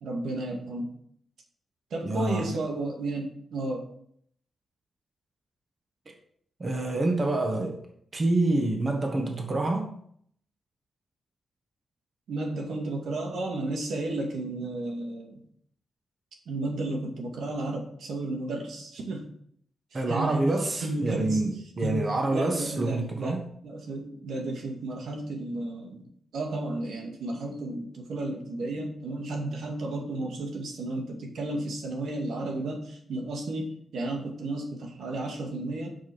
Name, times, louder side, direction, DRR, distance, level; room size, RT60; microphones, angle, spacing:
voice 1, 0.0-0.9 1.9-3.9 12.3-15.4 16.5-19.3 19.9-21.4 21.8-23.4 23.6-26.1 26.3-35.9, right 2 dB, 90° right, 2.2 m, -33 dB
voice 2, 2.0-2.5 6.1-6.2 6.6-7.8 8.1-9.9 19.9-23.4, right 2 dB, 30° right, 1.5 m, -27 dB
8.4 x 6.3 x 6.2 m
wide cardioid pair, 165°, 0 cm